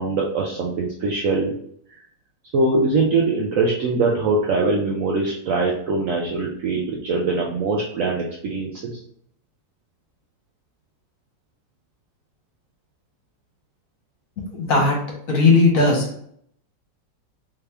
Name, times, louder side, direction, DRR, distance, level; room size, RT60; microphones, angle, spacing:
voice 1, 0.0-1.5 1.9-2.0 2.5-8.9, right 3 dB, 70° right, -2 dB, 0.8 m, -22 dB
voice 2, 14.4-15.0 15.3-16.1, left 3 dB, 55° left, -1 dB, 1.2 m, -17 dB
3.5 x 2.8 x 3.3 m, 0.66 s
omnidirectional pair, 1.9 m